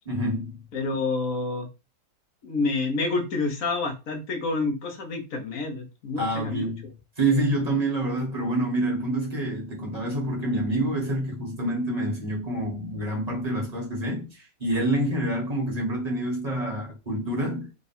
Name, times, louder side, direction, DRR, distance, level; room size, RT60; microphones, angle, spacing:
voice 1, 0.0-0.6 6.2-17.7, right 1 dB, 25° right, 1.2 m, -27 dB
voice 2, 0.7-1.7 2.4-6.7, left 3 dB, 55° left, 1.2 m, -28 dB
3.6 x 2.3 x 4.2 m
omnidirectional pair, 1.8 m